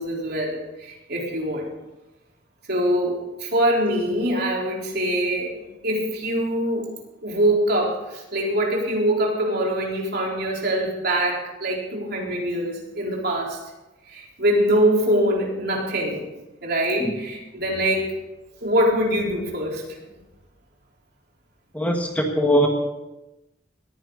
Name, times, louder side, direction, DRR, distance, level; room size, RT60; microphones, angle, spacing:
voice 1, 0.0-1.7 2.7-5.6 5.8-6.9 7.2-13.6 14.1-16.2 16.6-18.1 18.6-19.8, right 1 dB, 55° right, -2 dB, 4.2 m, -23 dB
voice 2, 21.7-22.7, equal, 10° left, 1 dB, 1.7 m, -21 dB
20.0 x 15.0 x 4.1 m, 1.0 s
head